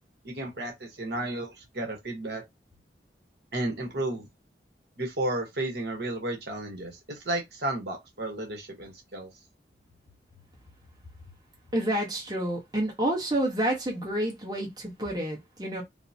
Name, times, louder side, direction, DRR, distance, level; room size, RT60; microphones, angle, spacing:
voice 1, 0.2-2.4 3.5-4.3 5.0-9.3, right 1 dB, 65° right, 1.0 m, -33 dB
voice 2, 11.7-15.8, right 1 dB, 20° right, 1.0 m, -29 dB
3.6 x 2.0 x 2.7 m
head